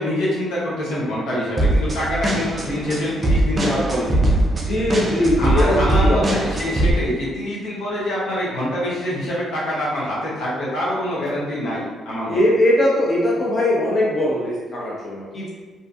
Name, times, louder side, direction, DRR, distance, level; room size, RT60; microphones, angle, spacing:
voice 1, 0.0-4.4 5.4-12.4 13.3-13.4, left 1 dB, 85° left, -7 dB, 0.8 m, -25 dB
sound 1, 1.6-6.9, right 1 dB, 30° right, 0.4 m, -21 dB
voice 2, 4.6-6.4 12.3-15.5, left 1 dB, 35° left, -6 dB, 0.9 m, -20 dB
2.6 x 2.4 x 2.3 m, 1.3 s
cardioid pair, 90°, 0 cm